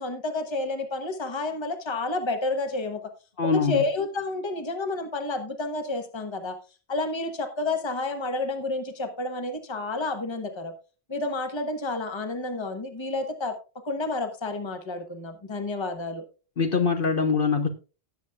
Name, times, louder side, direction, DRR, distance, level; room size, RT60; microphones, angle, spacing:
voice 1, 0.0-3.0 3.4-6.6 6.9-10.7 11.1-13.5 13.8-16.2, left 2 dB, 25° left, 1.3 m, -30 dB
voice 2, 3.4-3.8 16.6-17.7, left 5 dB, 60° left, 1.2 m, -23 dB
17.5 x 7.3 x 2.3 m
omnidirectional pair, 1.1 m